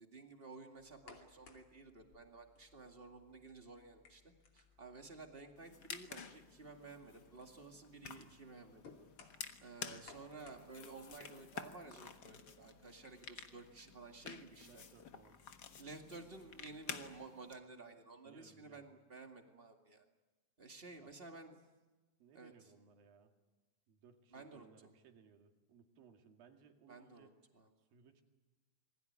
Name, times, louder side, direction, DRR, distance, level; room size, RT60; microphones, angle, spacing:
voice 1, 0.0-8.8 9.6-14.8 15.8-20.0 20.6-21.6 22.3-22.5 24.3-24.9 26.9-27.3 27.5-27.7, right 3 dB, 20° right, 4 dB, 1.6 m, -53 dB
sound 1, 0.8-17.3, left 4 dB, 40° left, 3.3 m, -66 dB
sound 2, 5.6-17.5, left 6 dB, 60° left, 1.0 m, -51 dB
sound 3, 10.2-12.7, left 5 dB, 80° left, 5.2 m, -66 dB
voice 2, 14.4-15.4 16.2-16.8 18.2-18.9 21.0-21.1 22.2-23.3 23.9-27.4 27.8-28.2, right 6 dB, 85° right, 5 dB, 3.9 m, -64 dB
27.0 x 21.0 x 9.5 m, 1.2 s
omnidirectional pair, 4.0 m